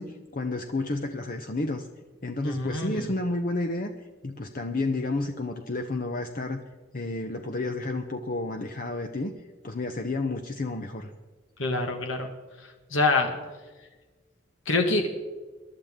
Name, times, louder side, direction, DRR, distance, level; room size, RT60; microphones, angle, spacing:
voice 1, 0.0-1.9 2.2-3.9 4.2-6.6 6.9-9.3 9.6-11.1, left 2 dB, 45° left, 5 dB, 0.8 m, -31 dB
voice 2, 2.4-3.1 11.6-12.3 12.9-13.4 14.6-15.1, left 3 dB, 75° left, 4 dB, 1.7 m, -25 dB
22.5 x 12.0 x 3.7 m, 1.3 s
head